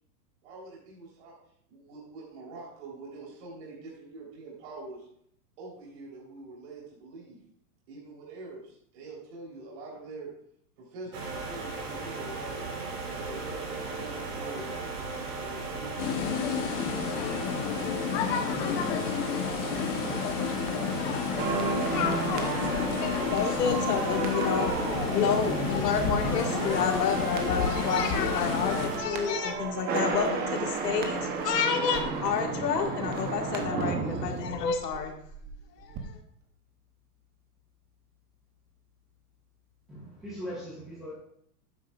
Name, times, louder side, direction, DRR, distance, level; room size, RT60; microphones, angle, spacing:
voice 1, 0.4-1.4 1.7-5.1 5.6-7.4 7.9-10.3 10.8-12.6 13.2-14.7 15.4-16.4, right 3 dB, 45° right, -5 dB, 3.9 m, -44 dB
sound 1, 11.1-29.0, right 3 dB, 70° right, 3.6 m, -36 dB
sound 2, 16.0-28.9, left 7 dB, 35° left, 1.1 m, -31 dB
sound 3, 21.4-35.5 35.8-36.0, right 4 dB, 20° right, 0.9 m, -33 dB
voice 2, 23.3-24.7 25.1-35.1 35.8-36.2, left 6 dB, 75° left, 3 dB, 2.0 m, -29 dB
voice 3, 39.9-41.1, equal, ahead, -11 dB, 0.3 m, -39 dB
12.0 x 9.2 x 2.5 m, 0.68 s
hypercardioid pair, 150°, 48 cm